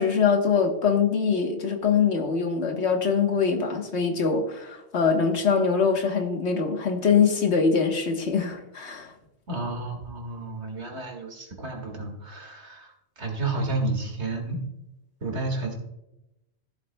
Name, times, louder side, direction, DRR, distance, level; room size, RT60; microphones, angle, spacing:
voice 1, 0.0-9.1, left 5 dB, 80° left, 4 dB, 1.5 m, -23 dB
voice 2, 9.5-14.6 15.2-15.7, right 2 dB, 75° right, 2 dB, 2.2 m, -31 dB
14.5 x 7.5 x 2.2 m, 0.91 s
omnidirectional pair, 1.1 m